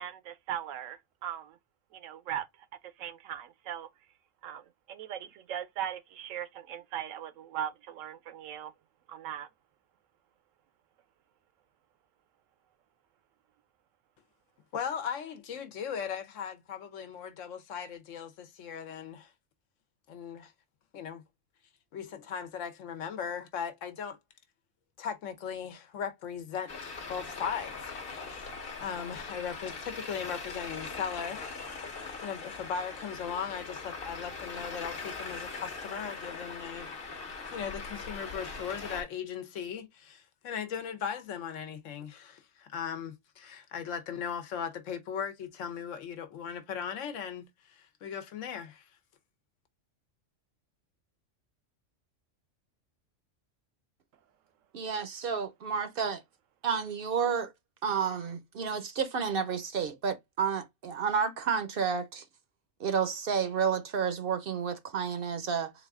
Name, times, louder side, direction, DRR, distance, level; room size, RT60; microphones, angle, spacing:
voice 1, 0.0-1.6 1.9-2.5 3.0-3.9 4.4-8.7 9.1-9.5, right 10 dB, 85° right, 1.0 m, -39 dB
voice 2, 14.7-19.3 20.1-20.5 20.9-21.2 21.9-24.2 25.0-28.5 28.8-31.6 31.9-48.9, left 7 dB, 80° left, 1.1 m, -38 dB
Traffic noise roadway noise, 26.7-39.0, left 4 dB, 50° left, 1.0 m, -41 dB
voice 3, 54.7-56.2 56.6-57.5 57.8-62.2 62.8-65.7, right 6 dB, 60° right, 0.7 m, -31 dB
4.0 x 2.4 x 3.4 m
omnidirectional pair, 1.3 m